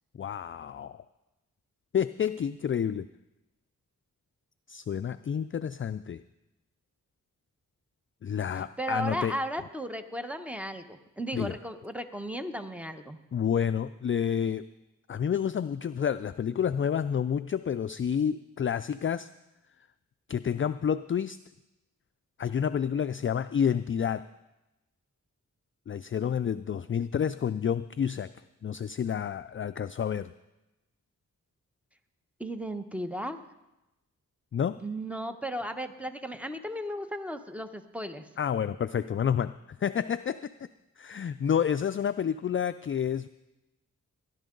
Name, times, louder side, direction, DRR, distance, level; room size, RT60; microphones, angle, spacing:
voice 1, 0.2-0.9 1.9-3.1 4.7-6.2 8.2-9.3 11.3-11.6 13.3-14.6 15.1-19.3 20.3-21.4 22.4-24.2 25.9-28.3 28.6-30.3 34.5-34.8 38.4-39.5 39.8-40.5 41.0-43.3, left 8 dB, 40° left, 12 dB, 0.4 m, -29 dB
voice 2, 8.5-13.2 32.4-33.4 34.8-38.3, equal, 5° right, 7 dB, 1.1 m, -35 dB
17.5 x 11.5 x 3.9 m, 0.98 s
cardioid pair, 50°, 33 cm